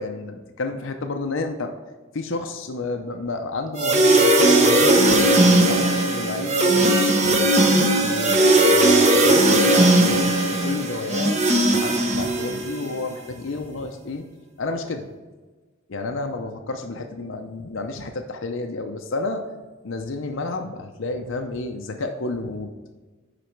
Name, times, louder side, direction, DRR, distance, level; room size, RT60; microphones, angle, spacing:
voice 1, 0.0-1.7 2.1-6.9 7.2-7.4 7.6-14.2 14.6-15.1 15.9-19.4 19.8-22.7, left 3 dB, 65° left, 5 dB, 0.6 m, -30 dB
sound 1, 3.8-12.9, right 1 dB, 35° right, 1.0 m, -18 dB
10.0 x 4.1 x 4.5 m, 1.3 s
head